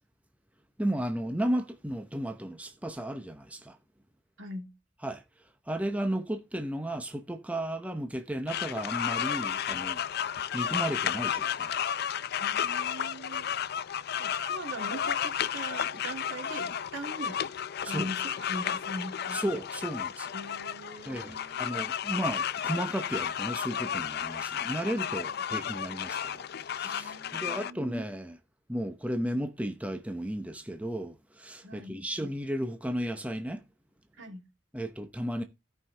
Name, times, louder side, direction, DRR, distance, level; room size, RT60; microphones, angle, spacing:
voice 1, 0.8-3.8 5.0-5.2 5.7-10.0 10.5-11.7 17.8-18.1 19.3-20.3 21.1-28.4 28.7-33.6 34.7-35.4, right 1 dB, 5° right, 0.8 m, -34 dB
voice 2, 4.4-4.7 12.4-13.5 14.2-17.4 17.8-19.4 20.3-21.6 26.8-27.8 31.6-32.0 34.2-34.4, right 1 dB, 75° right, 2.9 m, -41 dB
sound 1, 8.5-27.7, left 8 dB, 55° left, 0.5 m, -33 dB
16.0 x 5.6 x 3.3 m
head